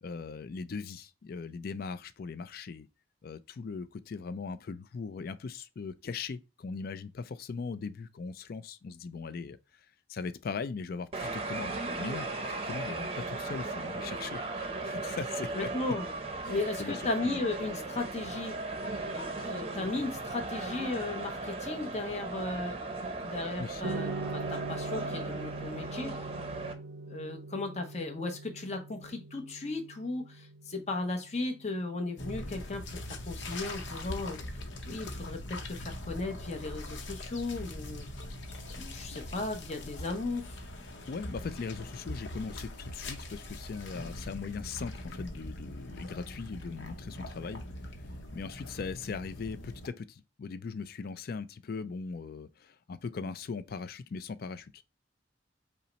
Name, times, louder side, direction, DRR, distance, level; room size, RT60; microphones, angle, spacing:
voice 1, 0.0-2.9 3.2-9.6 10.1-14.4 14.8-15.7 16.4-17.4 23.6-23.8 41.1-47.6 48.3-54.8, left 5 dB, 55° left, 0.4 m, -39 dB
sound 1, 11.1-26.7, right 3 dB, 35° right, 0.6 m, -37 dB
voice 2, 15.5-16.0 16.5-18.6 19.1-22.8 23.2-26.2 27.1-34.4 34.8-38.1 38.8-40.6, left 2 dB, 35° left, 0.8 m, -36 dB
sound 2, 23.8-32.3, right 3 dB, 85° right, 0.5 m, -42 dB
sound 3, 32.2-49.9, left 1 dB, 85° left, 0.7 m, -42 dB
5.5 x 2.1 x 4.0 m
head